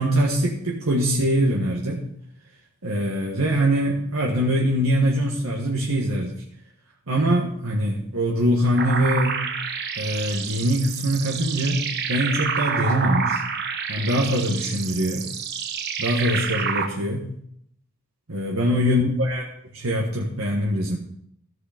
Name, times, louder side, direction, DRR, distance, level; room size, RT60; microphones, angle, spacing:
voice 1, 0.0-2.0 2.8-6.4 7.1-9.4 10.0-11.8 12.1-13.4 13.9-15.3 16.0-17.3 18.3-21.0, equal, 75° right, -2 dB, 1.6 m, -23 dB
sound 1, 8.8-16.9, right 6 dB, 50° right, 1.1 m, -28 dB
15.0 x 6.5 x 5.1 m, 0.69 s
head